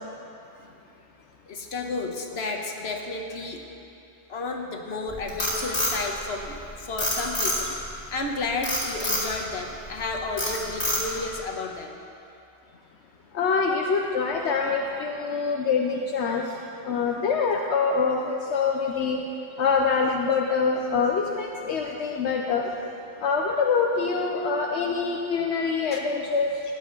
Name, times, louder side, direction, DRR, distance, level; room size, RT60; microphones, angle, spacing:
voice 1, 1.5-3.6 4.3-7.7 8.1-11.9 25.9-26.0, left 3 dB, 70° left, 2 dB, 1.3 m, -32 dB
Frog, 5.1-6.6 7.0-7.9 8.6-9.3 9.8-10.0 10.4-11.3, left 1 dB, 55° left, 3.1 m, -26 dB
voice 2, 13.3-19.2 19.6-22.7 23.2-26.6, left 5 dB, 85° left, 1 dB, 1.0 m, -25 dB
16.0 x 10.5 x 3.9 m, 2.7 s
omnidirectional pair, 1.1 m